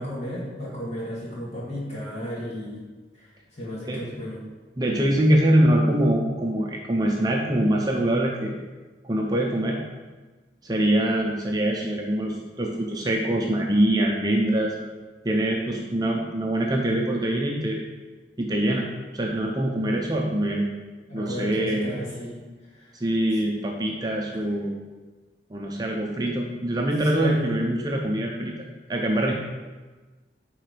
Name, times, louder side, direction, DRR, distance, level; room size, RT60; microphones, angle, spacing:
voice 1, 0.0-2.9 3.1-3.3 3.5-4.4 21.1-22.4 22.7-23.0 23.4-23.5 24.3-24.4 27.1-27.6, equal, 40° left, -6 dB, 2.4 m, -33 dB
voice 2, 4.8-8.5 9.0-9.8 10.6-14.7 15.2-17.9 18.4-18.9 19.1-20.7 21.1-21.9 22.9-24.8 25.5-29.3, right 1 dB, 20° right, -1 dB, 0.6 m, -24 dB
8.8 x 3.9 x 5.0 m, 1.3 s
head